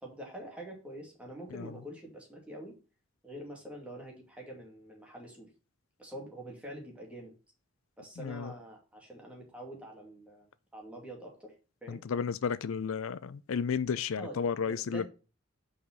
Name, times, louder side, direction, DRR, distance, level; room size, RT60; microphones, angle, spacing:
voice 1, 0.0-2.8 3.2-5.5 6.0-7.3 8.0-11.5 11.8-12.0 14.2-15.1, right 1 dB, 5° right, 2.4 m, -45 dB
voice 2, 8.2-8.5 11.9-15.1, left 6 dB, 90° left, 0.5 m, -33 dB
5.6 x 4.9 x 6.0 m
head